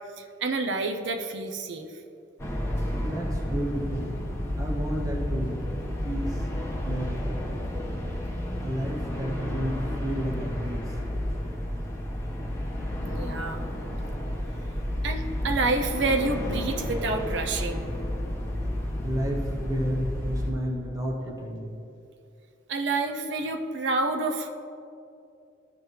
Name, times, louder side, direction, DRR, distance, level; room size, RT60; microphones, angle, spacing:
voice 1, 0.2-1.9 13.0-13.6 15.0-17.9 22.7-24.5, right 3 dB, 65° right, 4 dB, 0.5 m, -28 dB
sound 1, 2.4-20.5, left 1 dB, 15° left, 1.2 m, -31 dB
voice 2, 2.9-4.2 4.5-5.7 6.0-6.5 6.8-7.5 8.6-11.0 19.0-21.8, equal, 20° right, -2 dB, 0.9 m, -32 dB
13.5 x 4.7 x 3.2 m, 2.7 s
head